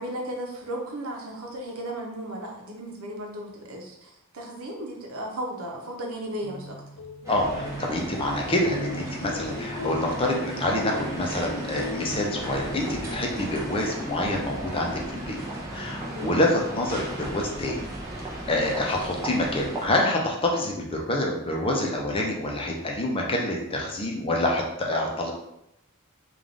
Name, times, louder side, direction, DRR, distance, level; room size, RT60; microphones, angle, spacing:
voice 1, 0.0-6.8 16.1-16.4, right 1 dB, 80° right, 0 dB, 0.8 m, -35 dB
sound 1, 6.3-13.9, left 1 dB, 65° left, 0.5 m, -38 dB
sound 2, 7.2-19.9, right 1 dB, 15° right, 0.8 m, -36 dB
voice 2, 7.3-15.4 15.7-17.9 18.5-25.3, left 1 dB, 25° left, 0 dB, 0.6 m, -27 dB
3.6 x 2.5 x 3.7 m, 0.82 s
head